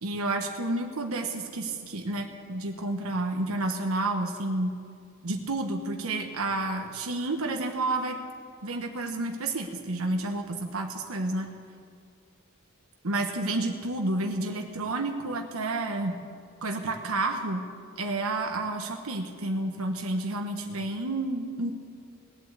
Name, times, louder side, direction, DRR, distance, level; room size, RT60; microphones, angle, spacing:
voice 1, 0.0-4.8 5.2-8.2 8.6-11.5 13.0-16.2 16.6-17.6 18.0-21.7, right 2 dB, 85° right, 3 dB, 1.2 m, -30 dB
19.0 x 8.3 x 8.1 m, 2.3 s
head